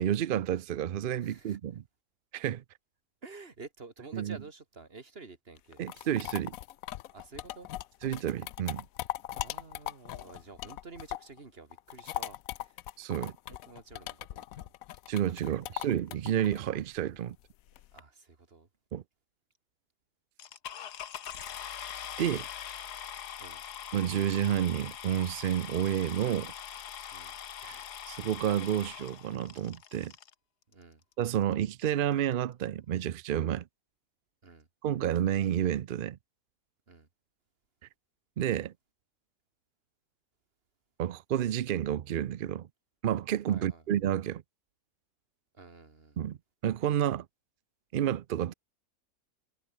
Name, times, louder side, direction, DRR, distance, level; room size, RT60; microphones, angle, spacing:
voice 1, 0.0-1.8 2.3-2.6 4.1-4.4 5.8-6.6 8.0-8.9 13.0-13.3 15.1-17.4 18.9-19.0 22.2-22.5 23.9-26.5 27.6-30.1 31.2-33.6 34.8-36.2 38.4-38.7 41.0-42.7 43.0-44.4 46.2-46.4 46.6-47.3 47.9-48.5, right 10 dB, 80° right, 0.4 m, -30 dB
voice 2, 1.2-1.6 3.2-5.8 7.1-7.7 9.3-12.4 12.6-12.7 13.1-14.7 17.9-18.7 23.4-23.6 27.1-27.3 30.7-31.0 34.4-34.7 36.9-37.1 43.5-43.8 45.6-46.2, right 4 dB, 40° right, 2.4 m, -50 dB
sound 1, 5.6-11.4 11.7-18.0, left 14 dB, 70° left, 1.0 m, -40 dB
sound 2, 20.4-30.3 31.1-31.2 31.7-31.8 32.0-32.3, left 9 dB, 90° left, 1.7 m, -42 dB
omnidirectional pair, 1.7 m